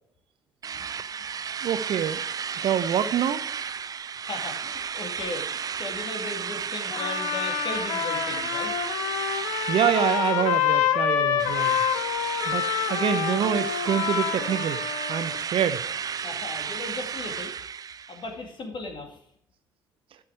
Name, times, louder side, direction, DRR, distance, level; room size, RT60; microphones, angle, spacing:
Drill, 0.6-11.0 11.4-18.3, right 7 dB, 35° right, 0.4 m, -33 dB
voice 1, 1.6-2.2 2.6-3.5 9.7-11.8 12.5-15.8, right 9 dB, 50° right, 11 dB, 0.8 m, -26 dB
voice 2, 4.2-8.7 11.4-11.5 16.2-17.5 18.1-19.2, left 2 dB, 45° left, 3 dB, 2.4 m, -37 dB
Trumpet, 6.9-15.4, left 10 dB, 70° left, 0.8 m, -27 dB
11.5 x 6.2 x 4.8 m, 0.67 s
figure-of-eight pair, 50°, 11 cm